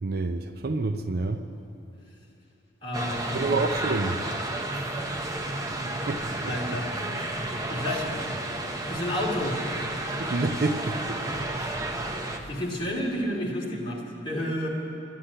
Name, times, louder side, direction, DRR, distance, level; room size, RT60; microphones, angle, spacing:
voice 1, 0.0-1.4 3.3-4.2 6.1-6.8 10.2-11.2 11.6-11.7, right 3 dB, 50° right, 8 dB, 0.6 m, -28 dB
voice 2, 2.8-3.5 5.7-6.1 6.5-6.9 7.7-8.1 8.8-9.6 12.5-14.7, left 1 dB, 25° left, -4 dB, 2.5 m, -31 dB
sound 1, 2.9-12.4, right 2 dB, 20° right, 0.8 m, -32 dB
12.5 x 11.5 x 8.9 m, 2.9 s
head